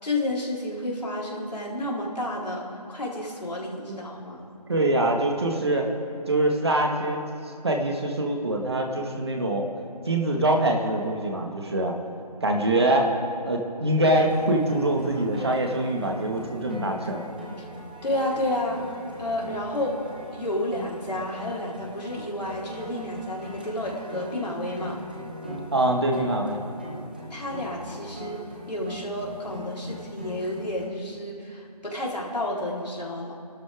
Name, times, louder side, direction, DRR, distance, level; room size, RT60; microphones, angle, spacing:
voice 1, 0.0-4.4 18.0-18.9 19.2-20.0 20.3-25.0 27.3-28.4 28.7-33.3, left 1 dB, 90° left, -4 dB, 4.2 m, -31 dB
voice 2, 4.7-5.9 6.3-7.2 7.6-9.7 10.1-12.0 12.4-13.1 13.4-17.2 25.7-26.6, right 1 dB, 40° right, 1 dB, 1.9 m, -24 dB
sound 1, 14.0-30.9, equal, 15° right, 0.9 m, -40 dB
29.5 x 12.0 x 3.7 m, 2.9 s
figure-of-eight pair, 175°, 21 cm